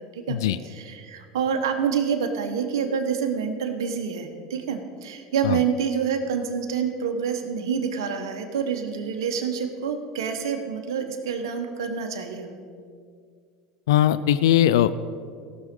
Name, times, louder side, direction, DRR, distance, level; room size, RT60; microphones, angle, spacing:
voice 1, 0.0-0.4 0.6-12.6, right 6 dB, 85° right, 5 dB, 1.1 m, -27 dB
voice 2, 13.9-15.0, left 11 dB, 85° left, 15 dB, 0.4 m, -20 dB
17.5 x 6.3 x 5.3 m, 2.2 s
supercardioid pair, 100°, 2 cm